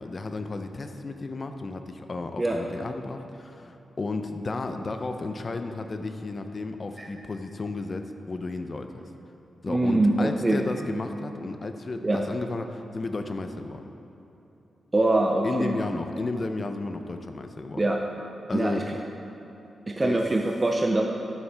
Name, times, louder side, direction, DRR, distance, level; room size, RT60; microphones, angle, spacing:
voice 1, 0.0-9.0 9.6-13.9 15.4-17.8 18.5-18.9 20.0-20.2, left 3 dB, 35° left, 7 dB, 0.5 m, -33 dB
voice 2, 9.7-10.6 12.0-12.2 14.9-15.7 17.8-18.0 18.5-18.8 19.9-21.0, right 2 dB, 20° right, 1 dB, 0.4 m, -23 dB
12.5 x 7.1 x 3.4 m, 2.9 s
wide cardioid pair, 120°, 0 cm